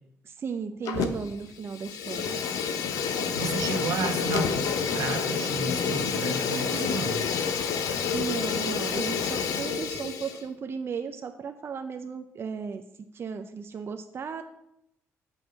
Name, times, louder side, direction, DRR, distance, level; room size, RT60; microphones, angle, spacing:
voice 1, 0.2-2.4 8.1-12.8 13.1-14.4, right 6 dB, 45° right, 6 dB, 0.6 m, -35 dB
Fire, 0.9-1.4 1.7-10.4, left 6 dB, 80° left, 0.8 m, -29 dB
voice 2, 3.3-7.2, right 4 dB, 85° right, 2 dB, 1.4 m, -32 dB
6.2 x 5.4 x 6.7 m, 0.82 s
cardioid pair, 90°, 6 cm